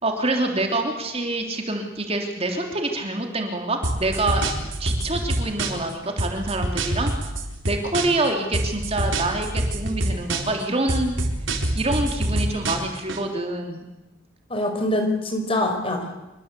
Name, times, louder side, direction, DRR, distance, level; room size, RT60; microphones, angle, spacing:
voice 1, 0.0-4.4 4.8-7.1 7.6-11.1 11.7-13.9, right 2 dB, 30° right, 3 dB, 3.3 m, -26 dB
sound 1, 3.8-5.9 6.2-8.3 8.5-10.6 10.9-13.2, right 1 dB, 80° right, 4.3 m, -26 dB
voice 2, 14.5-16.2, left 1 dB, 30° left, 5 dB, 5.1 m, -24 dB
27.0 x 23.0 x 8.4 m, 1.0 s
head